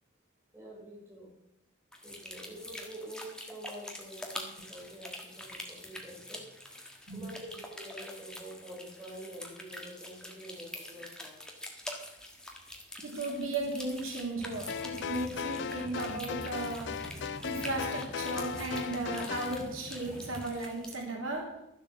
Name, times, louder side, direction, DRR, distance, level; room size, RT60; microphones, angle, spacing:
voice 1, 0.5-1.3 2.0-11.4, equal, 10° right, -4 dB, 4.0 m, -47 dB
sound 1, 1.9-21.0, left 1 dB, 5° left, 1.4 m, -46 dB
voice 2, 13.0-16.9 17.4-21.4, right 2 dB, 90° right, 0 dB, 3.2 m, -35 dB
sound 2, 14.4-20.5, equal, 35° right, 6.0 m, -47 dB
sound 3, 14.7-19.6, left 7 dB, 55° left, 0.4 m, -37 dB
12.0 x 7.8 x 6.8 m, 0.88 s
head